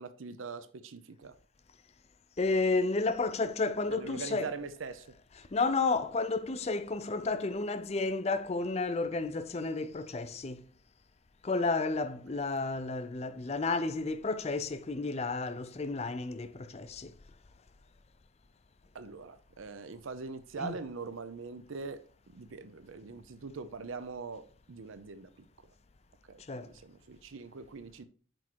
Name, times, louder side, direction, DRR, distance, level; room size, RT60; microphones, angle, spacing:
voice 1, 0.0-1.4 3.9-5.1 12.3-12.4 18.9-25.7 26.3-28.1, right 4 dB, 75° right, 0.6 m, -43 dB
voice 2, 2.4-4.5 5.5-10.7 11.4-17.2 20.6-20.7 26.4-26.7, left 3 dB, 30° left, 0.5 m, -31 dB
6.2 x 4.6 x 4.5 m
head